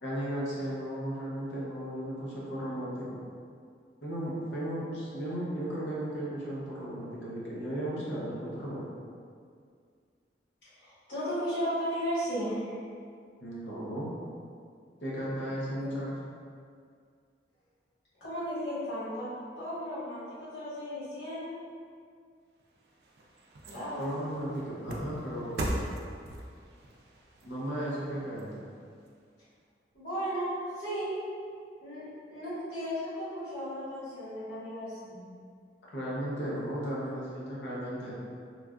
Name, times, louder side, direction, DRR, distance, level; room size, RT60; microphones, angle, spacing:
voice 1, 0.0-3.2 4.0-8.9 13.4-14.1 15.0-16.1 24.0-25.7 27.4-28.6 35.9-38.1, right 1 dB, 85° left, -6 dB, 0.7 m, -35 dB
voice 2, 10.8-12.7 15.8-15.9 18.2-19.3 19.6-21.5 23.6-24.1 29.9-31.1 31.8-35.2, equal, 65° left, -12 dB, 1.3 m, -35 dB
sound 1, 22.6-29.1 29.5-29.6, right 1 dB, 65° right, 0.3 m, -40 dB
3.1 x 2.3 x 2.3 m, 2.2 s
head